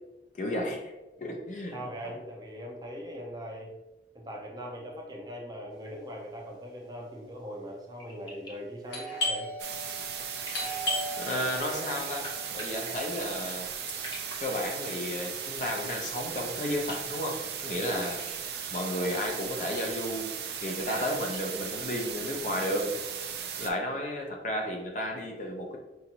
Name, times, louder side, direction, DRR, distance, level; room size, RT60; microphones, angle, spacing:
voice 1, 0.3-0.9 1.2-2.2 11.2-14.0 14.4-18.3 18.7-20.3 20.6-22.9 23.6-25.8, left 1 dB, 45° left, 1 dB, 0.7 m, -33 dB
voice 2, 1.7-3.7 4.1-9.5 17.7-18.1, equal, 20° right, 0 dB, 0.6 m, -41 dB
sound 1, 5.7-21.6, left 1 dB, 25° left, 1.0 m, -52 dB
Doorbell, 8.9-14.3, equal, 80° left, 1.2 m, -36 dB
sound 2, 9.6-23.7, right 7 dB, 70° right, 0.5 m, -37 dB
5.7 x 2.6 x 2.9 m, 1.0 s
head